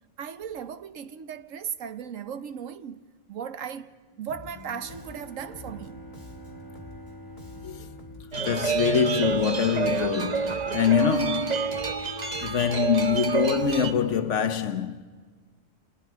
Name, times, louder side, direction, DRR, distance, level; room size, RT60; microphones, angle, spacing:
voice 1, 0.2-3.0 3.3-6.0 6.4-6.5, right 7 dB, 75° right, 1.2 m, -37 dB
Bowed string instrument, 4.1-9.6, right 1 dB, 15° left, 2.9 m, -47 dB
Bass guitar, 4.3-4.6 4.9-9.6 9.8-14.2, left 2 dB, 35° left, 2.6 m, -47 dB
sound 1, 8.3-13.9, right 5 dB, 35° right, 1.0 m, -28 dB
voice 2, 8.4-11.6 12.4-15.0, left 8 dB, 65° left, 1.3 m, -25 dB
29.0 x 27.5 x 4.6 m
omnidirectional pair, 1.4 m